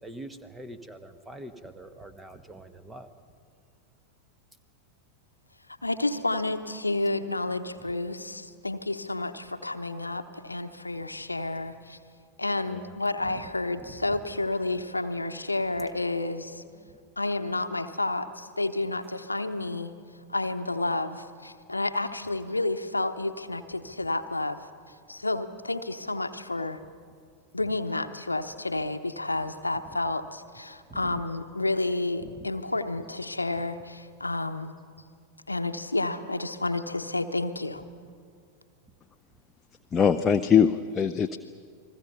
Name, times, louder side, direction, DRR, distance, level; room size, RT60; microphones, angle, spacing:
voice 1, 0.0-3.1 12.7-12.9 13.3-14.3 16.7-17.0 30.9-31.2 32.2-32.5, right 1 dB, 10° right, 10 dB, 1.4 m, -45 dB
voice 2, 5.8-12.0 12.4-16.6 17.2-19.9 20.3-24.6 25.1-26.8 27.5-34.7 35.5-37.8, left 2 dB, 85° left, 9 dB, 0.9 m, -30 dB
voice 3, 39.9-41.4, left 7 dB, 20° left, 7 dB, 0.6 m, -22 dB
30.0 x 20.5 x 5.6 m, 2.2 s
figure-of-eight pair, 90°, 0 cm